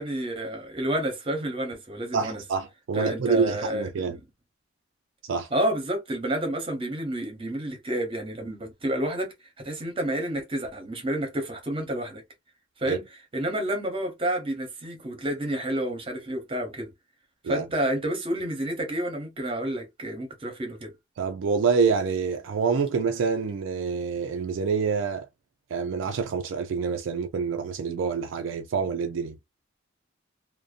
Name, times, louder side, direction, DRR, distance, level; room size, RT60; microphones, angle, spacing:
voice 1, 0.0-2.4 2.9-4.2 5.5-12.2 12.8-13.0 13.3-16.9 17.4-20.9, right 1 dB, 25° right, 0.8 m, -30 dB
voice 2, 2.1-4.2 5.3-5.5 12.9-13.0 17.4-17.7 21.2-25.3 25.7-29.4, right 5 dB, 65° right, 0.3 m, -27 dB
2.6 x 2.1 x 2.4 m
head